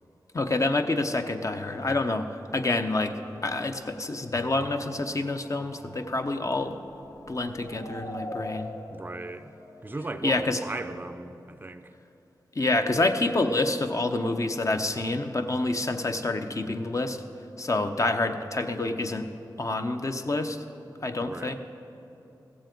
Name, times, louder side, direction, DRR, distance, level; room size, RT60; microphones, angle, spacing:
voice 1, 0.3-2.3 2.5-3.1 3.4-6.8 7.3-8.7 10.2-10.6 12.5-17.2 17.6-19.3 19.6-20.6 21.0-21.5, left 2 dB, 40° left, 7 dB, 0.8 m, -27 dB
sound 1, 5.1-10.8, left 1 dB, 80° left, 0.9 m, -43 dB
voice 2, 8.9-9.5 9.8-11.8 21.2-21.5, right 2 dB, 25° right, 10 dB, 0.5 m, -37 dB
15.0 x 7.5 x 4.6 m, 2.9 s
cardioid pair, 40°, 8 cm